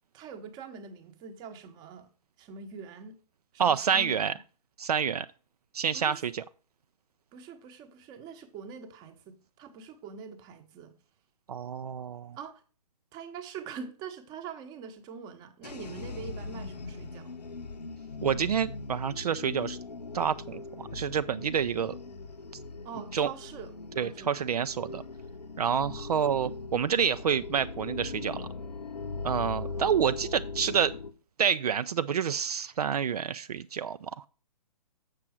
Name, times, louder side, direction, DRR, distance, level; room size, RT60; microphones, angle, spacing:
voice 1, 0.1-2.1 2.4-3.1 3.6-4.4 5.9-6.2 7.3-10.9 12.3-12.6 13.1-17.4 22.8-23.7 24.0-24.6 29.6-30.2, right 6 dB, 20° right, 0.9 m, -44 dB
voice 2, 3.6-4.3 4.8-5.3 5.7-6.4 11.5-12.4 18.2-19.8 20.1-22.0 23.1-23.3 24.0-25.0 25.6-28.5 29.2-30.9 31.4-34.3, right 7 dB, 65° right, 0.4 m, -28 dB
sound 1, 15.6-31.1, left 3 dB, 85° left, 0.8 m, -40 dB
7.5 x 6.2 x 4.8 m
figure-of-eight pair, 130°, 21 cm